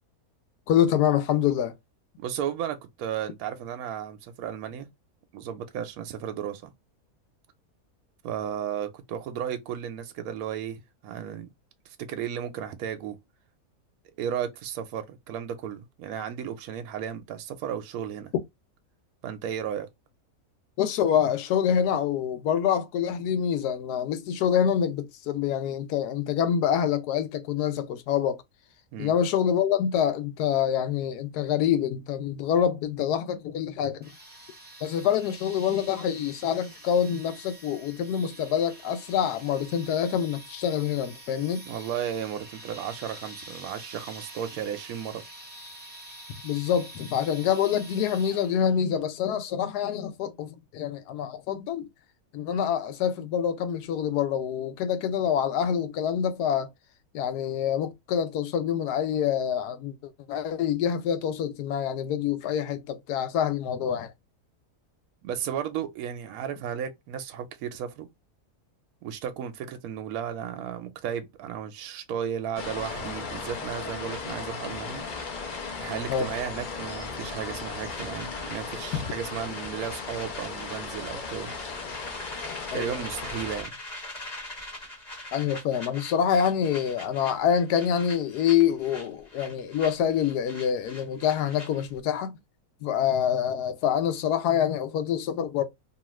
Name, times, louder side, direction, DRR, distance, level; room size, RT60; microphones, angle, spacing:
voice 1, 0.7-1.7 20.8-28.4 29.0-34.1 34.8-41.7 46.4-51.9 52.3-56.7 57.1-64.1 76.1-76.3 78.9-79.0 82.7-83.0 85.3-92.4 92.8-95.6, left 9 dB, 85° left, 1.1 m, -26 dB
voice 2, 2.2-4.9 5.3-6.7 8.2-11.5 11.9-13.2 14.2-18.3 19.2-19.9 28.9-29.1 41.7-45.2 65.2-68.1 69.0-75.0 75.8-81.5 82.7-83.7, right 9 dB, 75° right, 1.0 m, -34 dB
sound 1, 34.0-48.8, right 1 dB, 10° right, 0.9 m, -46 dB
sound 2, 72.6-83.6, left 4 dB, 45° left, 0.6 m, -36 dB
sound 3, 74.0-76.3 76.5-76.8 77.1-92.0, left 1 dB, 30° left, 1.1 m, -44 dB
2.8 x 2.4 x 3.0 m
omnidirectional pair, 1.7 m